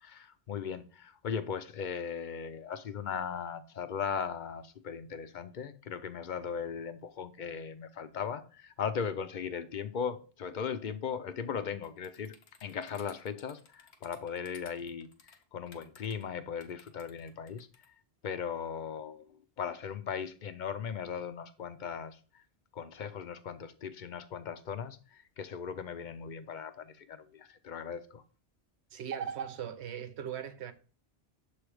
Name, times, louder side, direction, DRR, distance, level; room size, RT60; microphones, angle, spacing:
voice 1, 0.0-12.3 12.6-17.7 18.2-22.4 22.7-28.2, left 7 dB, 55° left, 0.6 m, -38 dB
sound 1, 11.8-16.2 16.6-17.9, left 6 dB, 80° left, 1.1 m, -58 dB
voice 2, 28.9-30.7, right 8 dB, 85° right, 1.0 m, -38 dB
6.9 x 3.2 x 4.8 m
omnidirectional pair, 1.1 m